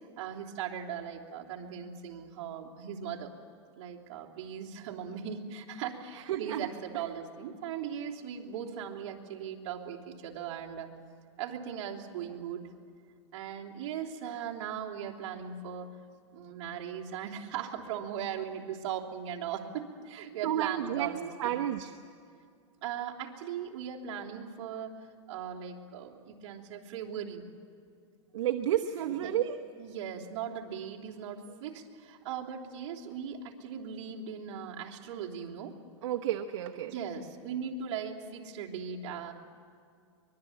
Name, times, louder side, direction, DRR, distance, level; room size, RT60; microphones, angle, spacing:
voice 1, 0.2-3.3 3.8-10.9 11.4-12.7 13.3-15.9 16.3-21.7 22.8-24.9 25.3-27.4 29.0-29.3 29.8-35.8 36.8-39.3, right 8 dB, 50° right, -3 dB, 3.2 m, -39 dB
voice 2, 6.3-6.6 20.4-21.9 28.3-29.6 36.0-36.9, right 11 dB, 70° right, 4 dB, 1.1 m, -31 dB
24.0 x 21.5 x 8.6 m, 2.3 s
supercardioid pair, 150°, 16 cm